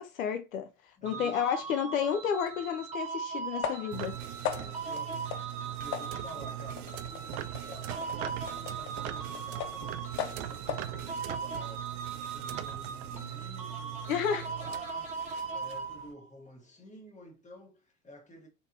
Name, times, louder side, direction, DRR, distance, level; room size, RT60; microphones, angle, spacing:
voice 1, 0.0-4.2 14.1-14.5, left 8 dB, 80° left, 0.6 m, -31 dB
voice 2, 1.0-1.4 4.5-5.3 5.6-12.0 12.3-18.5, equal, 20° left, 1.4 m, -51 dB
sound 1, 1.1-16.3, right 5 dB, 15° right, 1.4 m, -40 dB
sound 2, 2.5-2.6 3.6-4.1 4.4-4.9 5.3-5.5 5.9-9.9 10.2-10.9, left 9 dB, 45° left, 0.6 m, -39 dB
sound 3, 3.9-16.1, right 13 dB, 65° right, 0.5 m, -41 dB
3.3 x 3.1 x 2.5 m
figure-of-eight pair, 65°, 40 cm